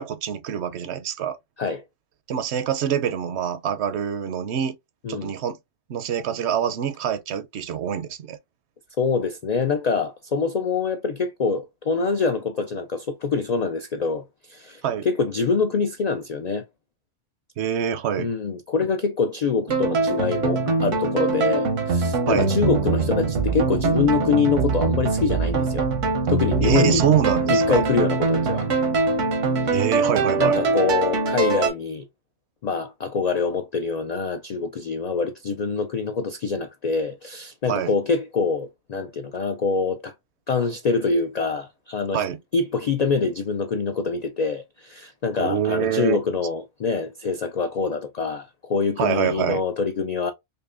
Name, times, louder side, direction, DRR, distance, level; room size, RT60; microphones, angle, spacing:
voice 1, 0.0-1.4 2.3-4.8 5.1-5.6 5.9-8.4 14.8-15.1 17.6-18.3 22.3-22.5 26.6-27.8 29.7-30.6 37.7-37.9 42.1-42.4 45.4-46.2 49.0-49.6, right 9 dB, 70° right, 0.8 m, -25 dB
voice 2, 9.0-16.6 18.2-25.9 26.3-27.0 27.5-28.7 29.6-29.8 30.4-32.1 32.6-40.1 40.5-42.2 42.5-50.3, left 5 dB, 80° left, 0.3 m, -25 dB
sound 1, 19.7-31.7, right 4 dB, 90° right, 1.3 m, -23 dB
5.3 x 2.2 x 2.4 m
omnidirectional pair, 1.2 m